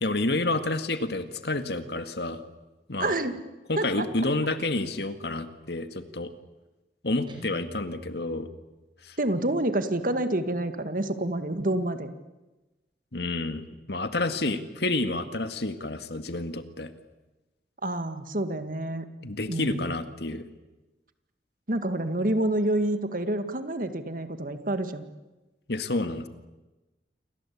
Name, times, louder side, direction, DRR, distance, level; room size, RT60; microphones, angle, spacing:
voice 1, 0.0-2.4 2.9-3.1 3.7-6.3 7.0-8.5 9.0-9.2 13.1-16.9 19.2-20.4 25.7-26.3, left 2 dB, 70° left, 9 dB, 2.0 m, -29 dB
voice 2, 3.0-3.4 3.8-4.1 9.2-12.1 17.8-19.1 19.5-19.9 21.7-25.0, right 1 dB, 50° right, 9 dB, 2.1 m, -28 dB
Guitar, 7.3-9.3, left 1 dB, 30° right, 4.8 m, -47 dB
28.5 x 24.0 x 8.6 m, 1.1 s
head